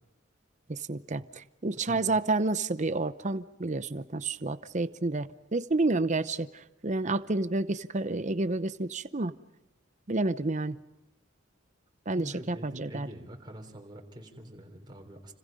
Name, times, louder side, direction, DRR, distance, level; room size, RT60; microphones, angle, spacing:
voice 1, 0.7-6.5 6.8-9.3 10.1-10.8 12.1-13.1, right 2 dB, 40° right, 13 dB, 0.8 m, -30 dB
voice 2, 12.1-15.3, equal, 25° right, 2 dB, 3.6 m, -45 dB
30.0 x 26.5 x 5.4 m, 0.91 s
head